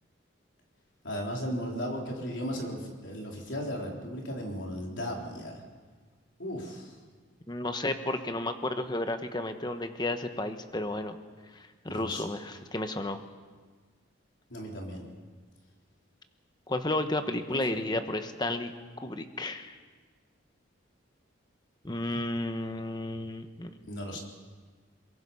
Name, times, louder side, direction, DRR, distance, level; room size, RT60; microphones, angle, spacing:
voice 1, 1.0-5.5 6.4-7.0 11.9-12.3 14.5-15.1 17.5-17.6 23.9-24.2, equal, 65° left, 0 dB, 3.8 m, -36 dB
voice 2, 7.5-11.2 11.5-13.2 16.7-18.7 19.0-19.7 21.8-23.7, left 2 dB, 20° left, 8 dB, 1.1 m, -32 dB
22.5 x 22.0 x 5.6 m, 1.5 s
head